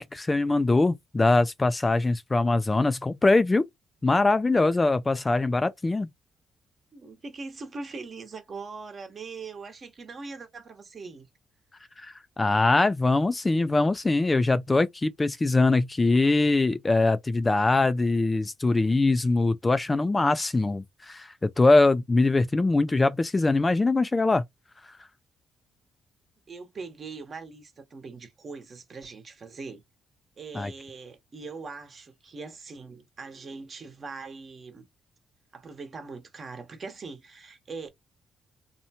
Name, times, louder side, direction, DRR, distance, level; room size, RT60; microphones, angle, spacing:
voice 1, 0.0-3.6 4.0-6.1 12.0-24.4 30.5-30.7, left 2 dB, 20° left, 0.3 m, -22 dB
voice 2, 6.9-11.3 26.5-29.8 30.4-34.8 35.5-37.9, right 4 dB, 45° right, 1.0 m, -41 dB
2.8 x 2.1 x 2.8 m
cardioid pair, 90°, 0 cm